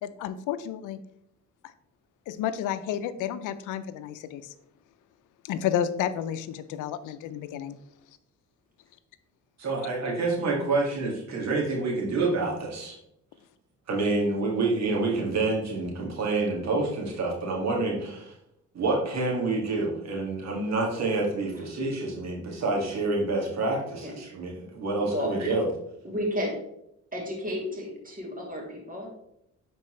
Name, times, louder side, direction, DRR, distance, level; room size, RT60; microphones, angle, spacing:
voice 1, 0.0-1.0 2.3-4.5 5.4-7.8, left 10 dB, 90° left, 12 dB, 0.5 m, -31 dB
voice 2, 9.6-13.0 13.9-18.3 18.7-25.7, right 3 dB, 60° right, -1 dB, 2.1 m, -28 dB
voice 3, 25.0-25.4 26.0-26.6 27.1-29.1, equal, 30° right, -2 dB, 2.9 m, -32 dB
9.7 x 4.4 x 3.1 m, 0.78 s
cardioid pair, 90°, 30 cm